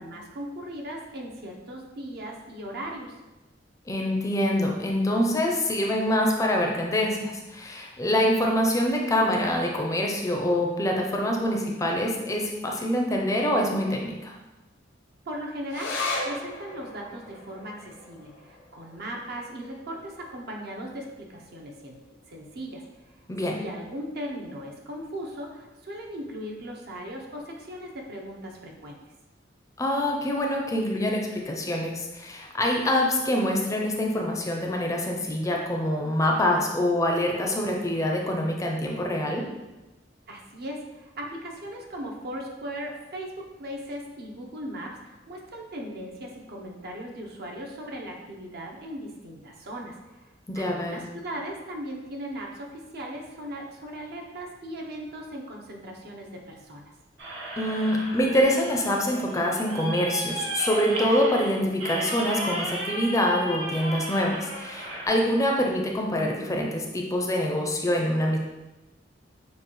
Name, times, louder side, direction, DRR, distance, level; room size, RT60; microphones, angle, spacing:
voice 1, 0.0-3.2 15.2-22.0 22.3-22.8 23.5-29.0 40.3-50.0 50.5-56.8, equal, 60° right, 0 dB, 0.7 m, -38 dB
voice 2, 3.9-14.3 23.3-23.6 29.8-39.4 50.5-51.1 57.6-68.4, left 1 dB, 15° left, 0 dB, 0.5 m, -25 dB
sound 1, 15.7-22.5 22.8-22.9 23.2-23.9 24.5-24.6, left 2 dB, 75° left, 0.8 m, -38 dB
sound 2, 57.2-65.1, right 1 dB, 85° right, 1.1 m, -34 dB
6.7 x 2.3 x 3.0 m, 1.1 s
head